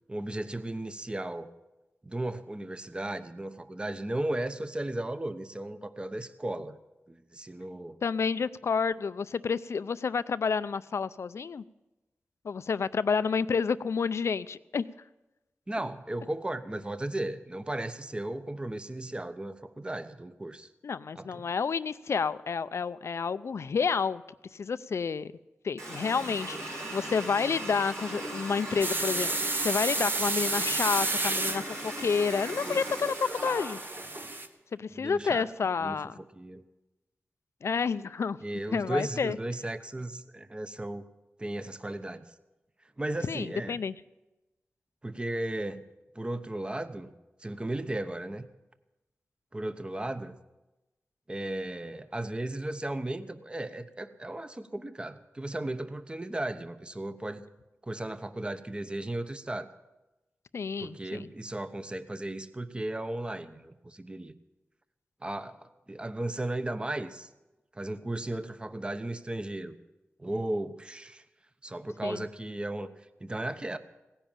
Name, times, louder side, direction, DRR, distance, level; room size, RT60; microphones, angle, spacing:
voice 1, 0.1-1.5 2.0-6.8 7.1-8.0 15.7-20.7 21.1-21.5 34.9-35.5 35.8-36.6 38.4-41.0 41.4-42.2 43.0-43.8 45.0-45.8 46.1-47.1 47.4-48.5 49.5-50.4 51.3-57.4 57.8-59.7 60.8-64.3 65.2-67.3 67.7-69.7 70.2-71.2 71.6-72.9 73.2-73.8, right 1 dB, 20° right, 11 dB, 0.9 m, -35 dB
voice 2, 8.0-11.6 12.4-14.9 20.8-24.2 24.5-25.3 25.6-33.8 34.8-36.2 37.6-38.4 38.7-39.4 43.3-43.9 60.5-61.3 72.0-72.2, left 5 dB, 70° left, 16 dB, 0.5 m, -30 dB
Water tap faucet, 25.8-34.3, right 1 dB, 80° right, 5.5 m, -38 dB
sound 1, 28.8-34.5, right 2 dB, 45° right, 1.2 m, -32 dB
17.0 x 10.0 x 7.3 m, 1.0 s
wide cardioid pair, 70°, 5 cm